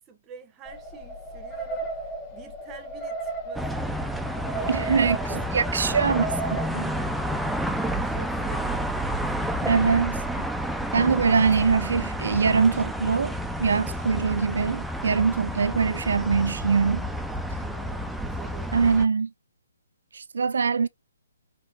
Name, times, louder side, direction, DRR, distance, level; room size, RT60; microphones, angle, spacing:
voice 1, 0.1-3.9 4.5-6.1 7.3-10.0 17.6-18.9, right 5 dB, 20° right, 0.8 m, -46 dB
sound 1, 0.7-7.6, right 3 dB, 20° left, 1.2 m, -35 dB
sound 2, 3.5-19.0, equal, ahead, 0.4 m, -30 dB
voice 2, 4.7-5.2 5.5-6.9 9.7-10.2 10.9-17.1 18.7-19.3 20.1-20.9, right 5 dB, 70° right, 0.4 m, -23 dB
4.5 x 3.0 x 2.7 m
hypercardioid pair, 145°, 0 cm